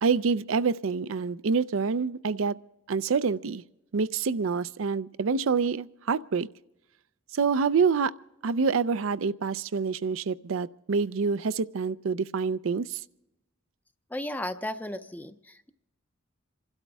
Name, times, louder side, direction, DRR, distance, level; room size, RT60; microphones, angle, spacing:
voice 1, 0.0-2.6 2.9-3.6 3.9-6.5 7.3-8.1 8.4-13.0, right 5 dB, 75° right, 0.5 m, -27 dB
voice 2, 14.1-15.7, left 1 dB, 10° left, 0.5 m, -35 dB
27.5 x 12.5 x 3.4 m
head